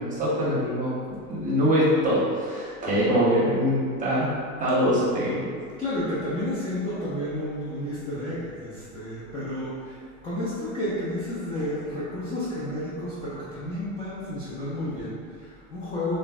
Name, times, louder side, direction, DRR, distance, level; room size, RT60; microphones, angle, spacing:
voice 1, 0.0-5.5, equal, 20° right, -7 dB, 0.7 m, -24 dB
voice 2, 5.8-16.2, left 1 dB, 15° left, -10 dB, 0.3 m, -31 dB
3.1 x 2.1 x 2.3 m, 2.1 s
hypercardioid pair, 105°, 43 cm